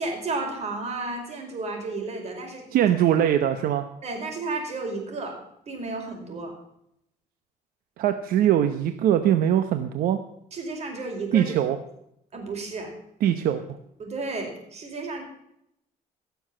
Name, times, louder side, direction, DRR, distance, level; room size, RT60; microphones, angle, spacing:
voice 1, 0.0-2.6 4.0-5.4 5.7-6.5 10.5-11.6 12.3-12.9 14.0-15.2, right 3 dB, 45° right, 2 dB, 5.0 m, -32 dB
voice 2, 2.7-3.9 8.0-10.2 11.3-11.8 13.2-13.6, right 10 dB, 80° right, 9 dB, 0.9 m, -22 dB
17.0 x 7.1 x 7.6 m, 0.77 s
cardioid pair, 115°, 15 cm